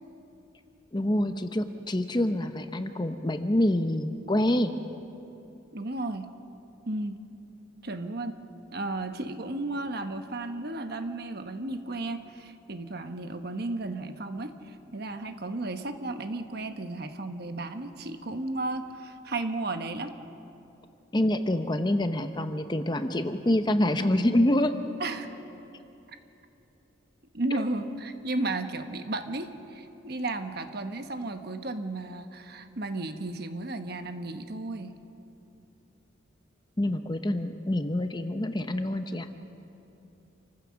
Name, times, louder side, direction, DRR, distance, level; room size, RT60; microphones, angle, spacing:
voice 1, 0.9-4.7 21.1-24.7 27.5-27.6 36.8-39.3, left 1 dB, 20° left, 8 dB, 0.7 m, -26 dB
voice 2, 5.7-6.3 6.9-7.2 7.8-8.4 8.7-20.1 25.0-25.3 27.3-35.0, right 2 dB, 50° right, 7 dB, 1.1 m, -34 dB
27.5 x 15.5 x 6.4 m, 2.9 s
head